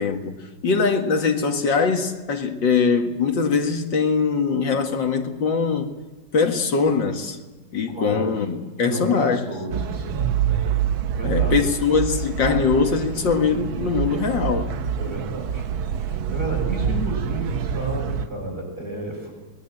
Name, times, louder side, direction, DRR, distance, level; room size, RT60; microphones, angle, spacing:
voice 1, 0.0-5.9 6.3-7.4 7.7-9.4 11.2-14.8, left 5 dB, 65° left, 2.4 m, -22 dB
voice 2, 7.9-8.3 8.8-10.4 11.2-11.7 15.0-19.3, right 2 dB, 50° right, 7.4 m, -32 dB
sound 1, 9.7-18.3, right 8 dB, 85° right, 1.8 m, -26 dB
21.5 x 21.0 x 9.1 m
omnidirectional pair, 2.1 m